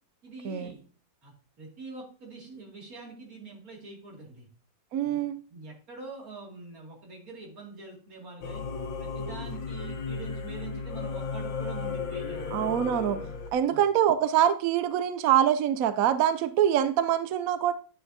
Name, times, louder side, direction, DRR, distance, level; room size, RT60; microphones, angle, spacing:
voice 1, 0.2-0.8 1.2-4.5 5.0-8.6 9.0-12.7 13.7-13.8, right 3 dB, 45° right, -1 dB, 3.0 m, -45 dB
voice 2, 4.9-5.4 12.5-13.2 13.5-17.7, right 10 dB, 75° right, 12 dB, 0.8 m, -24 dB
Singing / Musical instrument, 8.4-13.5, left 4 dB, 75° left, 1.9 m, -34 dB
10.5 x 7.9 x 2.8 m, 0.38 s
omnidirectional pair, 2.1 m